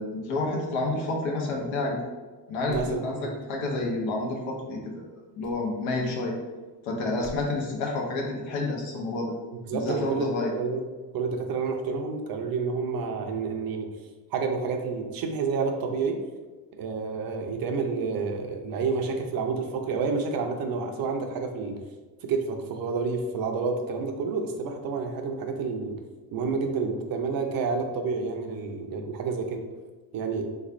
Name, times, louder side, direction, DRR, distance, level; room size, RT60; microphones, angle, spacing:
voice 1, 0.0-2.0 2.5-5.1 5.3-6.4 6.8-9.3 9.7-10.5, left 2 dB, 85° left, 0 dB, 1.0 m, -29 dB
sound 1, 2.7-3.0 5.4-5.6 7.2-7.5, right 2 dB, ahead, 0.5 m, -43 dB
voice 2, 2.7-3.3 9.7-10.8 11.1-13.9 14.3-16.2 16.8-21.8 22.2-25.9 26.3-29.6 30.1-30.5, right 4 dB, 50° right, 4 dB, 0.6 m, -29 dB
3.4 x 3.2 x 2.5 m, 1.3 s
cardioid pair, 105°, 45 cm